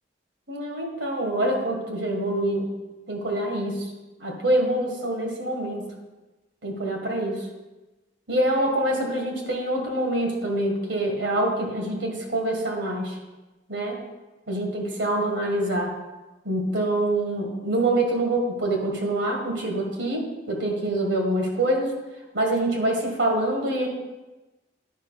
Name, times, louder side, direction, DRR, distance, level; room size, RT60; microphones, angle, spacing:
voice 1, 0.5-2.7 3.1-3.8 4.2-5.9 6.6-7.4 8.3-13.2 13.7-14.0 14.5-15.9 16.5-21.9 22.3-23.9, right 1 dB, 80° right, 1 dB, 1.7 m, -25 dB
10.5 x 5.3 x 4.0 m, 1.1 s
head